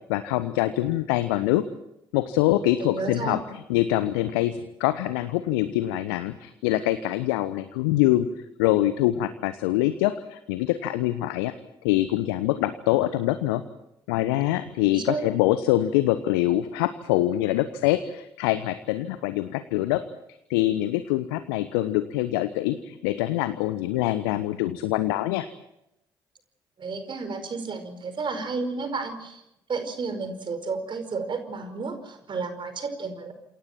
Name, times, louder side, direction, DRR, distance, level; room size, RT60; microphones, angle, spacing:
voice 1, 0.1-1.6 2.1-3.4 3.7-8.3 8.6-11.5 11.8-13.6 14.1-20.0 20.5-25.5, left 15 dB, 70° left, 13 dB, 1.0 m, -24 dB
voice 2, 2.8-3.4 14.9-15.3 26.8-29.4 29.7-33.3, right 4 dB, 40° right, 9 dB, 5.2 m, -32 dB
30.0 x 27.5 x 4.5 m, 0.84 s
figure-of-eight pair, 50°, 12 cm